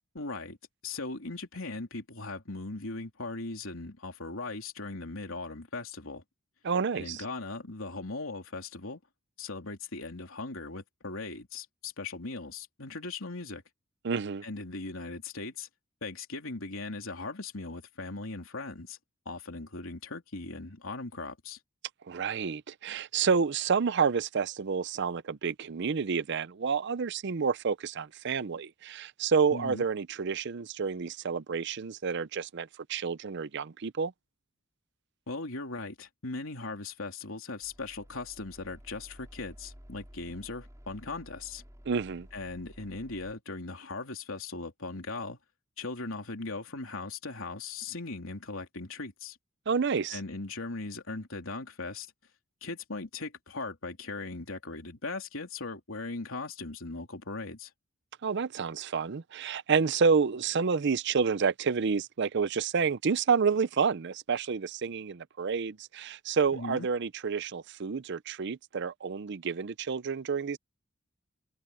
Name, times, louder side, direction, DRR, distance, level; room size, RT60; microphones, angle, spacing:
voice 1, 0.1-0.6 0.8-6.2 6.9-9.0 9.4-13.6 14.4-15.7 16.0-19.0 19.2-21.6 29.5-29.9 35.3-41.6 42.3-45.4 45.8-49.4 50.1-52.1 52.6-57.7 66.5-66.9, left 3 dB, 85° left, 3.2 m, -39 dB
voice 2, 6.6-7.2 14.0-14.4 22.1-34.1 41.9-42.3 49.7-50.2 58.2-70.6, right 5 dB, 60° right, 0.6 m, -29 dB
sound 1, 37.6-43.3, equal, 15° right, 5.9 m, -52 dB
head